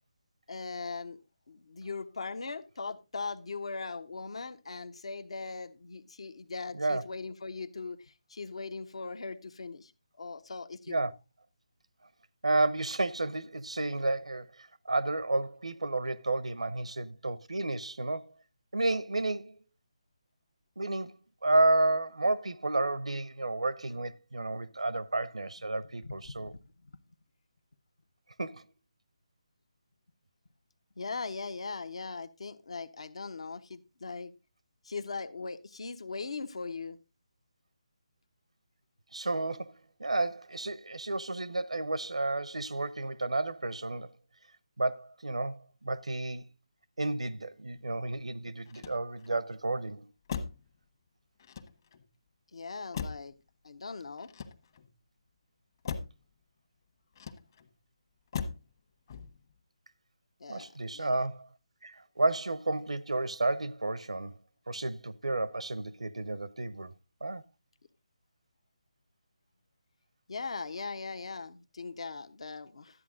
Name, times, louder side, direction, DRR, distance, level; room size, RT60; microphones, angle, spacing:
voice 1, 0.5-1.2 1.5-9.9 10.2-11.0 26.0-26.1 26.4-26.6 31.0-34.3 34.8-37.0 52.5-53.3 53.6-54.3 60.4-61.2 70.3-73.0, left 4 dB, 65° left, 1.1 m, -40 dB
voice 2, 12.4-18.3 18.7-19.6 20.8-21.2 21.4-26.5 28.4-28.6 39.1-44.1 44.8-46.4 47.0-50.0 60.5-61.5 61.8-64.4 64.7-66.9 67.2-67.4, right 2 dB, 80° right, 0.9 m, -31 dB
Motor vehicle (road), 48.7-49.4 50.3-50.7 51.4-52.1 52.9-53.4 54.2-54.9 55.8-56.2 57.1-57.7 58.3-58.7 59.1-59.5, left 6 dB, 40° left, 1.3 m, -39 dB
12.5 x 8.9 x 3.7 m
figure-of-eight pair, 150°, 3 cm